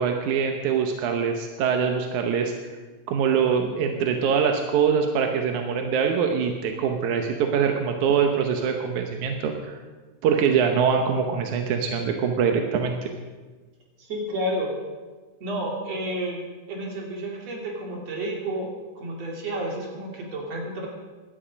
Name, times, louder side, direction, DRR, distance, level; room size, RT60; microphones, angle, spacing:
voice 1, 0.0-2.5 3.1-9.8 10.2-12.9, right 6 dB, 90° right, 4 dB, 2.4 m, -23 dB
voice 2, 14.0-14.7 15.4-20.9, right 1 dB, 60° right, -1 dB, 3.8 m, -31 dB
16.5 x 12.0 x 5.2 m, 1.3 s
omnidirectional pair, 3.3 m